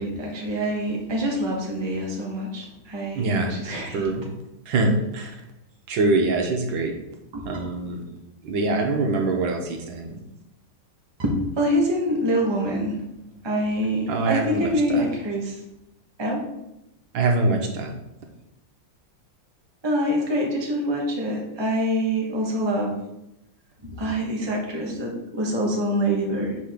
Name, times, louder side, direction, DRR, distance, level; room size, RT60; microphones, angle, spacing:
voice 1, 0.0-4.1 7.3-7.4 11.2-13.0 13.4-15.6 16.2-16.4 19.8-22.9 23.8-26.6, equal, 15° right, -2 dB, 1.0 m, -25 dB
voice 2, 3.1-3.5 3.9-4.2 4.7-5.3 5.9-6.9 7.5-8.0 8.4-10.2 14.1-15.0 17.1-17.9, right 3 dB, 75° right, 3 dB, 1.7 m, -24 dB
5.1 x 3.9 x 5.8 m, 0.89 s
omnidirectional pair, 2.2 m